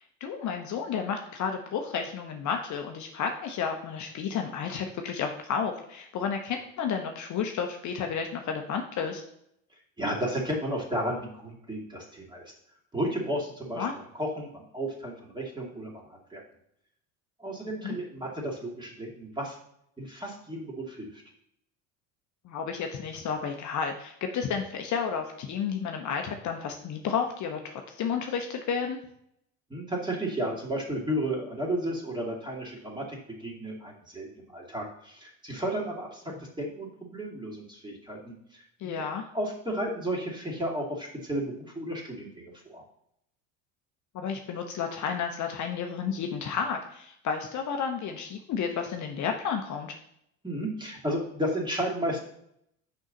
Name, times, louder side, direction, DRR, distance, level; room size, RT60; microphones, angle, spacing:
voice 1, 0.0-9.2 13.8-13.9 17.8-18.0 22.4-29.0 36.3-36.4 38.8-39.2 44.1-49.9, left 6 dB, 45° left, 4 dB, 0.9 m, -32 dB
voice 2, 9.7-12.5 12.9-16.4 17.4-19.6 20.0-21.2 29.7-39.0 39.3-42.8 50.4-52.2, right 1 dB, 10° right, -2 dB, 2.5 m, -33 dB
6.1 x 5.7 x 3.9 m, 0.74 s
hypercardioid pair, 75°, 39 cm